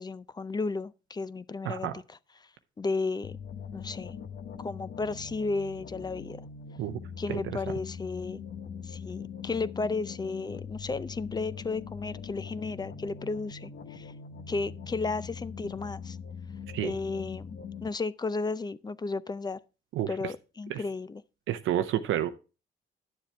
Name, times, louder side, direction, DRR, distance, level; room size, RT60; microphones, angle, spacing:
voice 1, 0.0-2.5 2.8-3.4 3.7-4.2 4.6-6.4 7.2-8.4 8.8-14.1 14.5-16.2 16.8-19.6 20.1-21.2, left 3 dB, 20° left, 0.5 m, -34 dB
sound 1, 3.2-17.9, left 6 dB, 55° left, 1.0 m, -42 dB
voice 2, 21.5-22.3, right 11 dB, 80° right, 0.7 m, -29 dB
10.5 x 7.3 x 3.3 m
cardioid pair, 90°, 20 cm